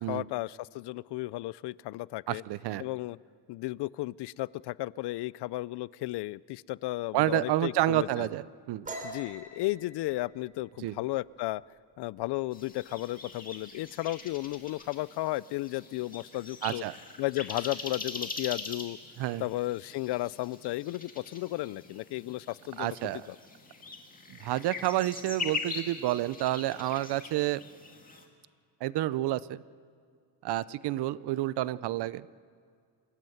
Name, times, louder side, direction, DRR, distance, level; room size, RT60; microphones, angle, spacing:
voice 1, 0.1-2.4 2.8-3.2 3.5-8.3 9.0-11.6 12.0-16.8 17.2-19.0 19.4-23.4, left 18 dB, 70° left, 22 dB, 0.5 m, -34 dB
voice 2, 2.3-2.8 7.1-8.9 10.8-10.9 16.6-16.9 19.2-19.4 22.8-23.2 24.3-27.6 28.8-29.6 30.4-32.2, right 15 dB, 65° right, 18 dB, 0.7 m, -29 dB
sound 1, 8.8-12.3 12.6-12.9 13.3-13.8 14.1-14.9, right 1 dB, 20° right, 3.7 m, -45 dB
sound 2, 12.5-28.3, left 4 dB, 20° left, 2.1 m, -42 dB
27.5 x 16.5 x 7.9 m, 2.2 s
cardioid pair, 155°, 43 cm